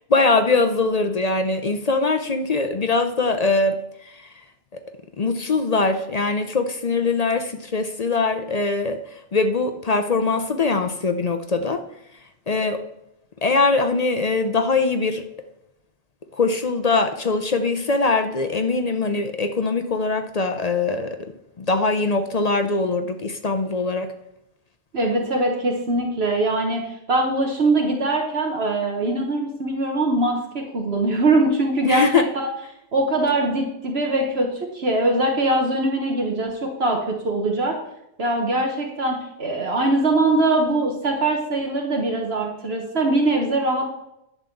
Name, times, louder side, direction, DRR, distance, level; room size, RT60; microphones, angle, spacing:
voice 1, 0.1-4.3 4.7-4.8 5.2-11.8 12.5-12.8 13.4-15.2 16.3-21.2 21.6-24.1 31.8-32.2, left 3 dB, 45° left, 8 dB, 0.6 m, -22 dB
voice 2, 24.9-32.5 32.9-37.8 38.2-43.9, right 2 dB, 60° right, 1 dB, 1.4 m, -22 dB
10.5 x 4.1 x 7.0 m, 0.83 s
omnidirectional pair, 1.2 m